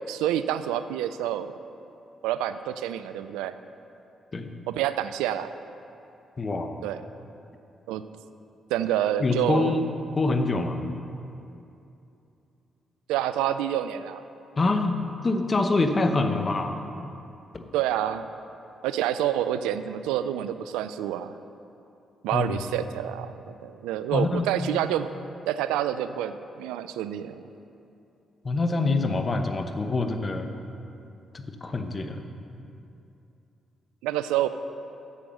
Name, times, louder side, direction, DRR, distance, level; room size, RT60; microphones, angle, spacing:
voice 1, 0.1-1.5 2.2-3.6 4.7-5.5 6.8-7.0 7.9-8.0 8.7-9.8 13.1-14.2 17.7-18.3 18.8-21.4 22.2-25.1 25.5-27.4 34.0-34.5, right 11 dB, 80° right, 12 dB, 0.3 m, -28 dB
voice 2, 6.4-6.8 9.2-9.9 10.2-10.8 14.6-15.0 15.2-16.7 17.5-17.6 22.3-22.6 24.1-24.5 28.4-30.5 31.3-32.2, left 3 dB, 40° left, 7 dB, 0.9 m, -25 dB
8.4 x 7.6 x 6.4 m, 2.7 s
hypercardioid pair, 45°, 0 cm